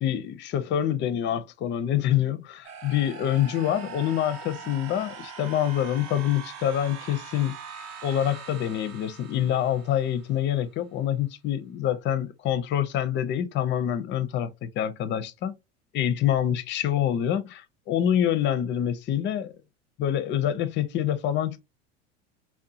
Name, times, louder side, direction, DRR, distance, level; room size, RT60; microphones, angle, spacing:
voice 1, 0.0-7.5 8.0-15.5 15.9-19.5 20.0-21.6, left 10 dB, 30° left, 0.4 m, -26 dB
sound 1, 2.6-10.6, right 6 dB, 45° right, 0.6 m, -42 dB
2.7 x 2.1 x 2.7 m
hypercardioid pair, 75°, 36 cm